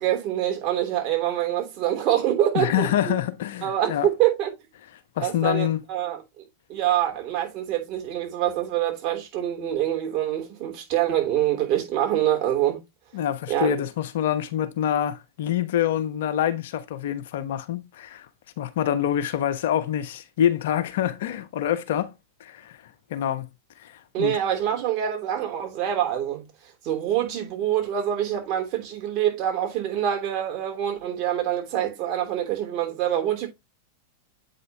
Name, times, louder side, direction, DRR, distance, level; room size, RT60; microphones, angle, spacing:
voice 1, 0.0-3.2 3.6-4.5 5.2-6.4 6.7-12.8 13.5-13.8 24.1-26.5 26.8-33.5, right 11 dB, 45° right, 3.1 m, -25 dB
voice 2, 2.5-4.1 5.2-5.8 13.1-18.3 18.6-22.1 22.4-22.8 23.1-23.5 23.8-24.4, left 10 dB, 65° left, 0.9 m, -26 dB
8.3 x 5.4 x 2.9 m
hypercardioid pair, 100°, 0 cm